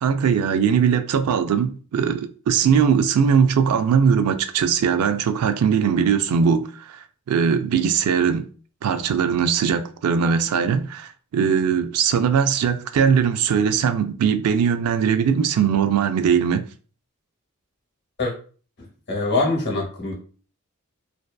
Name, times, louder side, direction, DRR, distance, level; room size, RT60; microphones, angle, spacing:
voice 1, 0.0-8.5 8.8-16.7, right 7 dB, 75° right, 0.3 m, -20 dB
voice 2, 19.1-20.1, left 2 dB, 50° left, 0.9 m, -23 dB
2.6 x 2.2 x 2.2 m
head